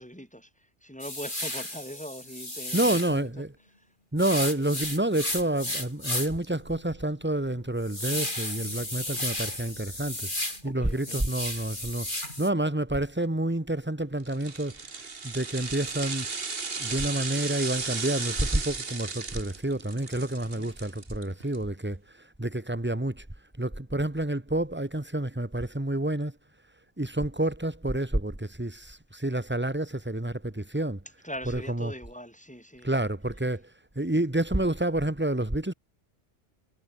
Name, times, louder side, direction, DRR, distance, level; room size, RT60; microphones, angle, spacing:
voice 1, 0.0-3.4 3.8-3.9 10.6-11.2 20.5-20.7 31.2-32.9, equal, 5° left, 7.3 m, -42 dB
sound 1, 1.0-3.2 4.2-6.4 6.9-7.0 7.4-10.6 10.9-12.5, left 1 dB, 45° left, 7.5 m, -33 dB
voice 2, 2.7-3.5 4.1-10.3 10.6-14.8 15.2-16.3 16.8-23.3 23.6-26.4 27.0-31.0 31.4-31.9 32.8-33.7 34.0-35.7, right 1 dB, 10° right, 1.8 m, -29 dB
sound 2, 14.3-21.6 21.9-22.0, right 4 dB, 55° right, 2.0 m, -35 dB
omnidirectional pair, 1.2 m